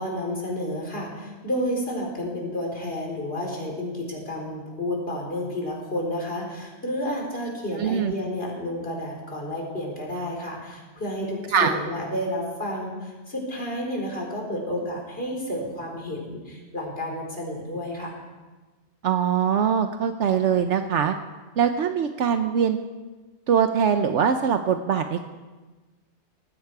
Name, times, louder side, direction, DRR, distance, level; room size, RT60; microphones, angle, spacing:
voice 1, 0.0-18.1, left 1 dB, 55° left, -1 dB, 4.5 m, -31 dB
voice 2, 7.7-8.1 11.5-11.8 19.0-21.1 21.6-22.8 23.5-25.2, right 7 dB, 75° right, 7 dB, 1.1 m, -22 dB
19.5 x 15.5 x 4.8 m, 1.2 s
omnidirectional pair, 1.2 m